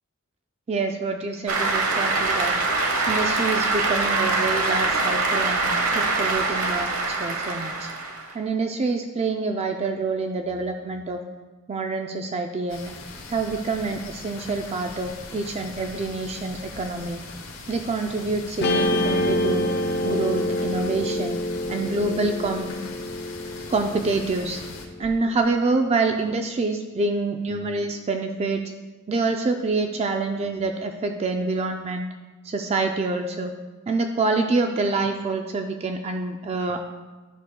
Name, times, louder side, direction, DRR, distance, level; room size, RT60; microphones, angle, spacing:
voice 1, 0.7-2.5 3.1-7.9 8.3-11.2 11.7-12.9 13.3-17.2 17.7-19.6 20.0-21.4 21.7-22.7 23.7-24.6 25.0-28.6 29.1-32.1 32.4-33.5 33.9-36.8, right 3 dB, 30° right, 4 dB, 0.4 m, -26 dB
Cheering / Applause, 1.5-8.3, right 3 dB, 85° right, 1.0 m, -24 dB
sound 1, 12.7-24.9, left 3 dB, 90° left, 1.1 m, -40 dB
Guitar, 18.6-25.1, left 1 dB, 50° left, 0.5 m, -27 dB
10.5 x 6.3 x 2.2 m, 1.3 s
head